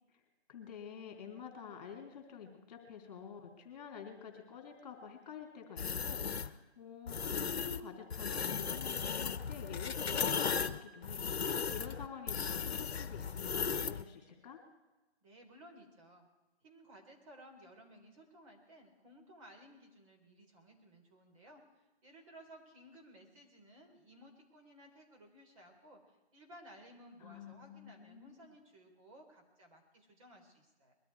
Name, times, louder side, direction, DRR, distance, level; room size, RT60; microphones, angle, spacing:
voice 1, 0.5-11.2 11.7-14.6 27.2-28.5, left 7 dB, 35° left, 2 dB, 3.4 m, -49 dB
sound 1, 5.8-6.5 7.1-7.8 8.1-14.0, left 6 dB, 65° left, 1.1 m, -36 dB
voice 2, 15.2-16.3 16.6-21.6 22.0-30.9, equal, 30° right, 1 dB, 3.9 m, -58 dB
21.5 x 13.0 x 4.8 m, 1.1 s
hypercardioid pair, 160°, 33 cm